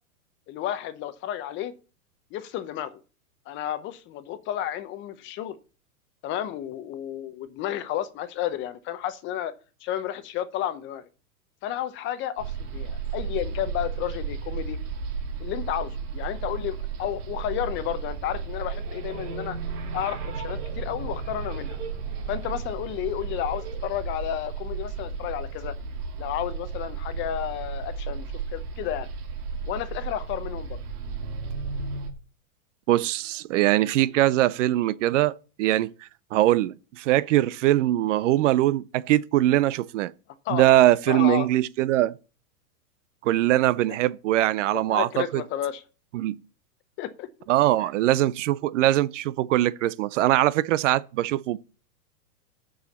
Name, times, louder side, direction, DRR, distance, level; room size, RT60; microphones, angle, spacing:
voice 1, 0.5-1.7 2.3-3.0 3.5-5.6 6.2-9.5 9.8-11.1 11.6-14.8 15.4-19.6 19.9-21.8 22.3-25.7 26.2-29.1 29.7-30.8 40.4-40.6 41.1-41.5 44.9-45.8 47.0-47.3, left 11 dB, 25° left, 0.7 m, -32 dB
sound 1, 12.4-32.1, right 5 dB, 85° right, 2.3 m, -33 dB
voice 2, 32.9-40.1 40.5-42.1 43.2-45.4 46.1-46.4 47.5-51.6, right 14 dB, 55° right, 0.6 m, -22 dB
6.9 x 6.3 x 7.2 m
hypercardioid pair, 135°, 45 cm